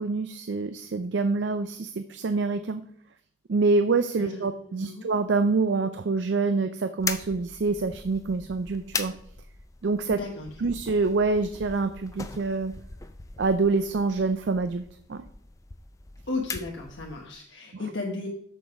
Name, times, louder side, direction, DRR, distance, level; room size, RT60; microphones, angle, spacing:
voice 1, 0.0-2.8 3.5-9.1 9.8-10.2 10.6-12.7 13.4-14.8 15.1-15.2 17.7-17.8, right 3 dB, 70° right, 9 dB, 0.4 m, -26 dB
voice 2, 4.7-5.1 10.1-10.5 16.3-18.3, left 3 dB, 75° left, -1 dB, 1.1 m, -34 dB
Living Room light switch, 7.0-17.3, left 4 dB, 15° left, 0.4 m, -39 dB
7.0 x 6.2 x 4.8 m, 0.67 s
head